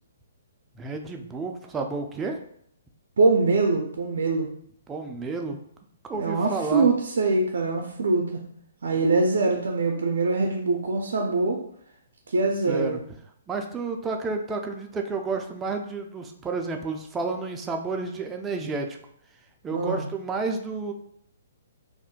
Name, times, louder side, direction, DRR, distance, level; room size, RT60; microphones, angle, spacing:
voice 1, 0.8-2.4 4.9-5.6 6.1-6.9 9.0-9.1 12.7-13.0 13.5-19.0 19.6-20.9, right 4 dB, 15° right, 3 dB, 0.3 m, -31 dB
voice 2, 3.2-4.5 6.1-8.4 8.8-11.6 12.3-12.9 19.7-20.1, right 3 dB, 80° right, 1 dB, 0.4 m, -23 dB
2.5 x 2.1 x 3.7 m, 0.66 s
hypercardioid pair, 145°, 0 cm